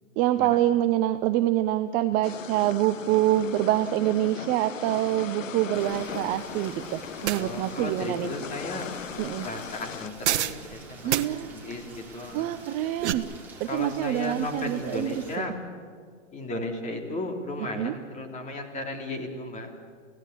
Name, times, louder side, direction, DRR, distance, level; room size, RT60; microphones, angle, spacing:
voice 1, 0.2-8.3 9.2-9.5 11.0-11.5 12.3-13.2 13.6-15.6 17.8-17.9, right 13 dB, 25° right, 10 dB, 0.6 m, -26 dB
sound 1, 2.2-10.1, left 8 dB, 85° left, 1.2 m, -39 dB
Rain, 5.7-15.4, right 3 dB, 5° right, 5.0 m, -48 dB
sound 2, 7.2-7.4 10.2-10.6 11.1-11.3 12.7-13.1, right 11 dB, 60° right, 1.4 m, -26 dB
voice 2, 7.4-8.9 9.4-11.2 11.4-12.5 13.7-15.5 16.3-19.8, left 2 dB, 20° left, 3 dB, 3.4 m, -35 dB
28.5 x 16.5 x 8.4 m, 2.1 s
hypercardioid pair, 135°, 38 cm